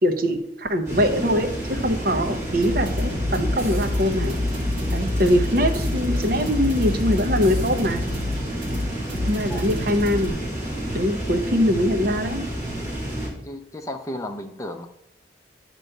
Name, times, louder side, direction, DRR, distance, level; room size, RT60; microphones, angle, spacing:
voice 1, 0.0-4.4 4.9-8.0 9.2-10.4 10.9-12.4, equal, 50° right, 6 dB, 0.8 m, -22 dB
sound 1, 0.8-13.3, right 1 dB, 15° right, 3.2 m, -30 dB
sound 2, 2.6-10.3, left 1 dB, 70° right, 1.7 m, -27 dB
voice 2, 13.4-14.9, left 1 dB, 15° left, 5 dB, 0.5 m, -33 dB
9.1 x 3.1 x 6.6 m, 0.76 s
head